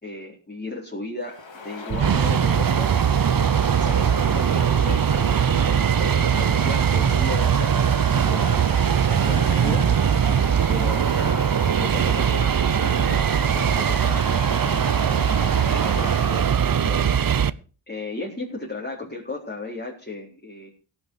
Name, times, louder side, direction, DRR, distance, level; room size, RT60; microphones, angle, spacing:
voice 1, 0.0-1.4 1.6-2.9 3.8-9.8 10.7-17.1 17.9-20.7, left 3 dB, 20° left, -3 dB, 4.4 m, -35 dB
Bird vocalization bird call bird song, 1.2-16.5, left 4 dB, 75° left, 3.1 m, -37 dB
sound 1, 1.9-17.5, right 8 dB, 50° right, 0.8 m, -21 dB
17.0 x 7.0 x 6.5 m, 0.37 s
wide cardioid pair, 75°, 45 cm